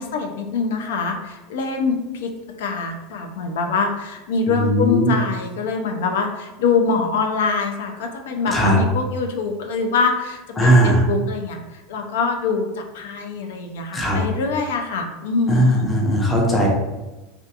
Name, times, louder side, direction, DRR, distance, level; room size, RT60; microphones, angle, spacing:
voice 1, 0.0-2.3 2.6-15.9, left 4 dB, 85° left, 4 dB, 0.4 m, -24 dB
voice 2, 4.5-5.1 8.5-8.8 10.6-11.0 13.9-14.2 15.5-16.7, equal, 10° left, -3 dB, 0.4 m, -17 dB
2.4 x 2.3 x 2.6 m, 1.1 s
supercardioid pair, 170°, 0 cm